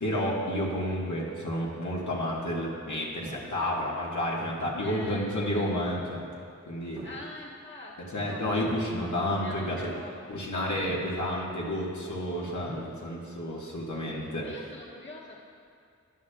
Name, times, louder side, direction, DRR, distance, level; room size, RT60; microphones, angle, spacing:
voice 1, 0.0-6.2 6.7-7.0 8.1-9.9 10.3-14.5, equal, 85° left, -4 dB, 1.4 m, -30 dB
sound 1, 3.2-3.7 4.6-5.1 5.9-6.5 7.0-7.4 8.2-8.7 9.7-10.2 10.7-11.3 12.4-13.0, right 1 dB, 80° right, 1.3 m, -45 dB
voice 2, 4.8-5.3 7.0-8.5 9.4-10.2 14.4-15.4, left 2 dB, 40° left, -4 dB, 1.3 m, -44 dB
13.0 x 9.9 x 2.3 m, 2.4 s
wide cardioid pair, 60°, 29 cm